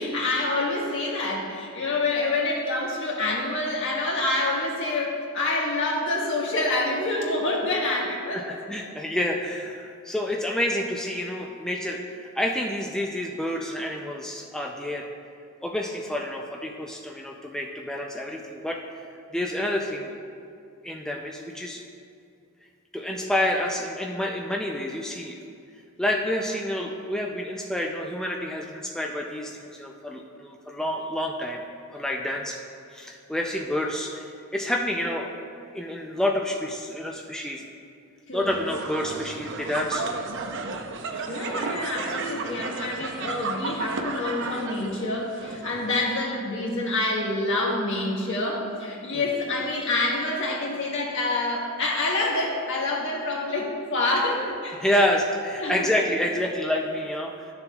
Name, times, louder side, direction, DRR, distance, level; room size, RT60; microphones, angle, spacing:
voice 1, 0.0-8.4 38.3-38.5 41.3-54.8 55.6-55.9, left 2 dB, 60° left, -3 dB, 1.5 m, -27 dB
voice 2, 8.3-15.1 15.6-19.0 19.3-20.2 20.8-21.8 22.9-25.4 26.0-31.6 31.9-32.6 32.9-35.4 35.7-37.7 38.3-40.2 41.2-41.3 49.1-49.2 54.8-57.5, left 1 dB, 5° left, 0 dB, 0.4 m, -28 dB
sound 1, 38.5-46.0, right 4 dB, 60° right, 0.6 m, -33 dB
12.5 x 6.8 x 2.3 m, 2.5 s
head